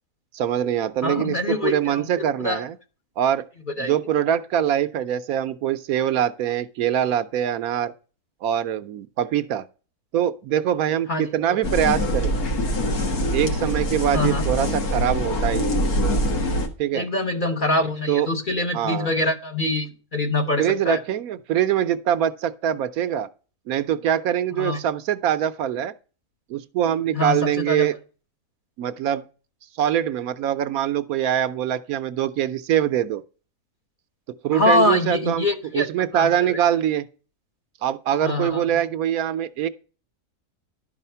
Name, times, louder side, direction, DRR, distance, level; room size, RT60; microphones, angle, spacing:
voice 1, 0.3-2.8 3.2-3.4 3.8-7.9 8.4-9.6 10.1-12.4 13.3-15.8 16.8-17.1 18.1-18.3 18.7-19.1 20.6-23.3 23.7-25.9 26.5-27.9 28.8-29.2 29.8-33.2 34.4-35.5 35.7-37.0 37.8-39.7, right 10 dB, 70° right, 1.0 m, -23 dB
voice 2, 1.0-2.0 2.4-2.6 3.8-3.9 11.1-11.3 14.1-14.5 16.9-21.0 24.6-24.8 27.1-27.9 34.5-35.9 36.1-36.3 38.2-38.6, left 2 dB, 40° left, 0.9 m, -24 dB
sound 1, 11.6-16.7, equal, 70° left, 2.0 m, -24 dB
11.5 x 4.9 x 5.5 m
omnidirectional pair, 1.6 m